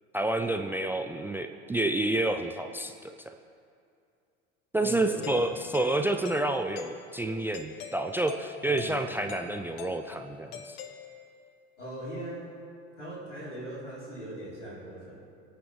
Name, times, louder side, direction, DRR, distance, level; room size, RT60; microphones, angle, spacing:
voice 1, 0.1-3.3 4.7-10.8, right 2 dB, 5° right, 7 dB, 0.3 m, -29 dB
voice 2, 4.8-5.6 8.7-9.3 11.8-12.5 13.0-15.2, right 1 dB, 85° left, -5 dB, 3.4 m, -40 dB
Doorbell, 5.2-11.6, left 8 dB, 55° left, 1.0 m, -45 dB
23.5 x 8.9 x 3.2 m, 2.4 s
figure-of-eight pair, 70°, 35 cm